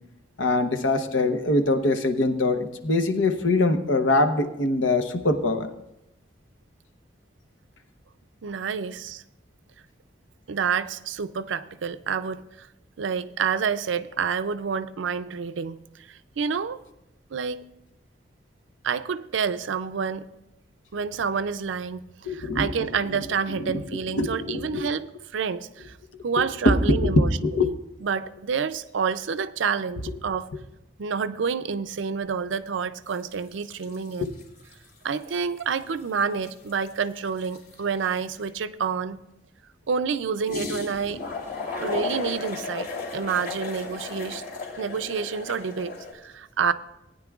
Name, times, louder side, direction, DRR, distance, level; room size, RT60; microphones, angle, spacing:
voice 1, 0.4-5.7 22.3-22.9 24.1-24.9 26.6-27.1 27.4-27.7, left 2 dB, 90° left, 0.9 m, -23 dB
voice 2, 8.4-9.2 10.5-12.7 13.0-15.8 16.1-16.8 17.3-17.6 18.8-20.3 20.9-22.0 22.3-25.1 25.3-26.0 26.2-27.3 27.6-27.7 28.0-30.5 31.0-34.3 35.0-39.2 39.9-41.2 41.8-44.4 44.8-46.7, right 6 dB, 80° right, 0.5 m, -28 dB
sound 1, 33.1-33.3 33.6-34.9 35.2-35.3 35.6-38.4 40.5-46.1, left 3 dB, 60° left, 3.0 m, -34 dB
19.0 x 9.7 x 2.4 m
head